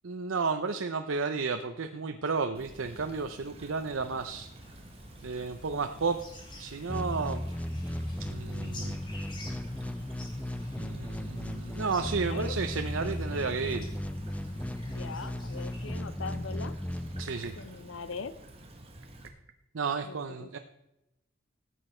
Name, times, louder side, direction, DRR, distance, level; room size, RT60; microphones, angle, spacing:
voice 1, 0.0-4.5 5.2-6.2 6.6-7.4 8.2-9.0 10.8-13.9 17.2-17.5 19.7-20.6, right 4 dB, 85° right, 7 dB, 0.7 m, -32 dB
Stream / Trickle dribble, 2.5-19.3, right 1 dB, 30° right, 1.5 m, -51 dB
sound 1, 4.6-15.9, left 2 dB, 25° left, 2.3 m, -52 dB
sound 2, 6.9-17.8, left 1 dB, 5° left, 0.4 m, -36 dB
voice 2, 14.9-16.8 17.6-18.3 20.0-20.6, left 4 dB, 80° left, 15 dB, 0.6 m, -41 dB
15.0 x 8.3 x 4.4 m, 0.91 s
head